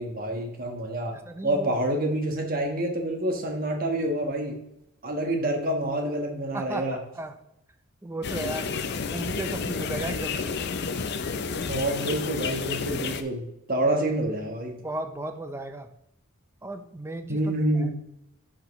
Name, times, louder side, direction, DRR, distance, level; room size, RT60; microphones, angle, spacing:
voice 1, 0.0-1.1 1.4-4.6 5.0-7.0 11.7-14.8 17.3-18.0, right 1 dB, 45° right, 2 dB, 1.3 m, -27 dB
voice 2, 1.2-1.7 6.5-7.4 8.0-8.7 9.1-10.5 13.8-13.9 14.8-15.9 16.6-17.9, right 2 dB, 10° right, 7 dB, 0.6 m, -35 dB
sound 1, 8.2-13.2, left 5 dB, 55° left, 0.5 m, -30 dB
10.5 x 5.8 x 3.1 m, 0.82 s
head